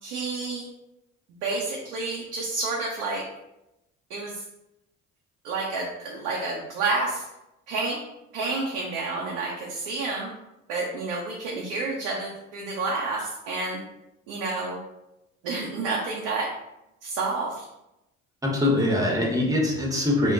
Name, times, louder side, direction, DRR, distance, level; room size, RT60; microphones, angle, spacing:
voice 1, 0.0-0.7 1.4-3.3 4.1-4.4 5.4-7.2 7.7-8.0 8.3-10.3 10.7-13.8 14.3-14.8 15.4-16.5 17.0-17.6, right 3 dB, 75° right, -3 dB, 0.6 m, -29 dB
voice 2, 18.4-20.3, left 1 dB, 10° right, -1 dB, 0.9 m, -23 dB
2.2 x 2.1 x 3.8 m, 0.90 s
hypercardioid pair, 55°, 36 cm